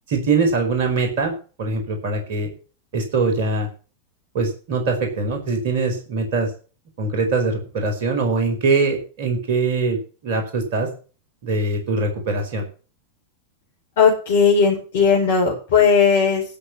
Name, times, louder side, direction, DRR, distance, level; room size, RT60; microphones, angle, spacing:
voice 1, 0.1-2.5 2.9-3.7 4.3-6.5 7.0-10.0 10.2-10.9 11.4-12.7, right 3 dB, 50° right, 4 dB, 4.7 m, -22 dB
voice 2, 14.0-16.4, left 6 dB, 55° left, -3 dB, 5.1 m, -17 dB
13.0 x 6.9 x 7.1 m, 0.36 s
figure-of-eight pair, 90°, 0 cm